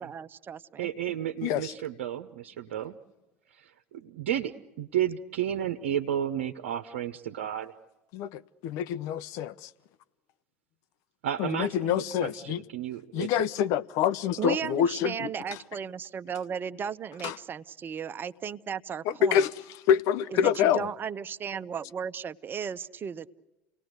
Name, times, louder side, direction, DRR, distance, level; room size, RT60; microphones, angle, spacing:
voice 1, 0.0-0.9 14.4-19.5 20.3-23.3, right 7 dB, 35° right, 0.9 m, -35 dB
voice 2, 0.8-3.0 3.6-7.7 11.2-13.3, right 10 dB, 75° right, 0.9 m, -32 dB
voice 3, 1.4-1.7 8.1-9.7 11.4-12.6 13.1-15.3 17.2-17.3 19.1-19.5 19.9-20.9, left 9 dB, 60° left, 0.7 m, -26 dB
29.0 x 19.0 x 8.1 m
hypercardioid pair, 70°, 6 cm